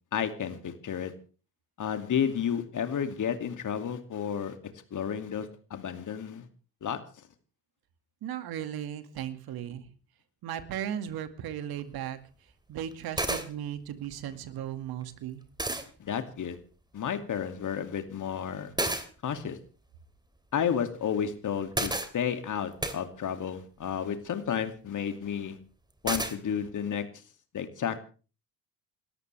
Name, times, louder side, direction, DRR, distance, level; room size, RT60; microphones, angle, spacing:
voice 1, 0.1-1.1 1.8-4.6 4.9-6.5 6.8-7.0 16.0-16.6 16.9-18.7 19.2-19.6 20.5-25.6 26.0-27.0 27.5-28.0, left 8 dB, 45° left, 8 dB, 2.5 m, -31 dB
voice 2, 8.2-9.8 10.4-12.2 12.7-15.4, right 10 dB, 60° right, 10 dB, 2.2 m, -36 dB
sound 1, 11.8-11.9 12.9-13.0 13.2-13.5 15.0-15.1 15.6-15.8 18.8-19.1 21.7-22.1 22.8-23.0 26.1-26.3, right 1 dB, 10° right, 2.5 m, -29 dB
28.5 x 13.5 x 3.4 m, 0.37 s
hypercardioid pair, 60°, 41 cm